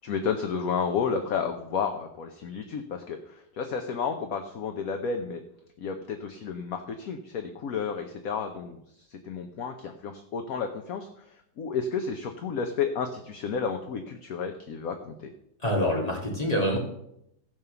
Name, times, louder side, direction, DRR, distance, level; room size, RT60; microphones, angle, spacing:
voice 1, 0.0-5.4 5.8-15.3, left 6 dB, 55° left, 6 dB, 1.2 m, -32 dB
voice 2, 15.6-16.8, equal, 20° left, -2 dB, 3.2 m, -26 dB
16.0 x 5.4 x 6.9 m, 0.77 s
omnidirectional pair, 2.0 m